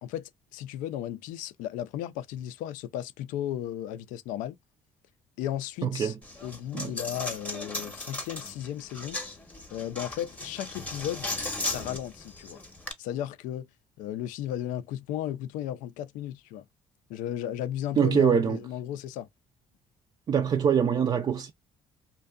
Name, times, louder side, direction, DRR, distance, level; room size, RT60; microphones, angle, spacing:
voice 1, 0.0-4.6 5.4-6.1 6.4-9.2 9.7-11.3 11.6-12.6 13.0-13.7 14.0-16.7 17.1-19.3, left 11 dB, 85° left, 0.4 m, -35 dB
voice 2, 5.8-6.2 6.7-6.9 18.0-18.6 20.3-21.5, right 7 dB, 35° right, 0.3 m, -24 dB
Coin (dropping), 6.2-12.9, left 2 dB, 10° left, 0.7 m, -37 dB
2.6 x 2.2 x 2.2 m
cardioid pair, 105°, 13 cm